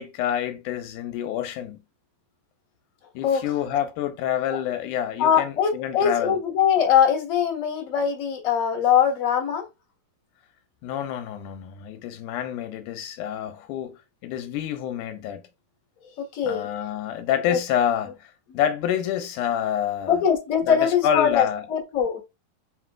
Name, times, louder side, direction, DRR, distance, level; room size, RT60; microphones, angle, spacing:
voice 1, 0.0-1.8 3.2-6.4 10.8-14.0 14.2-15.4 16.4-20.2 20.6-21.7, left 10 dB, 90° left, 2.1 m, -28 dB
voice 2, 5.2-9.6 16.2-16.7 17.5-17.6 20.1-22.2, left 8 dB, 40° left, 1.2 m, -22 dB
5.7 x 3.1 x 2.4 m
omnidirectional pair, 3.6 m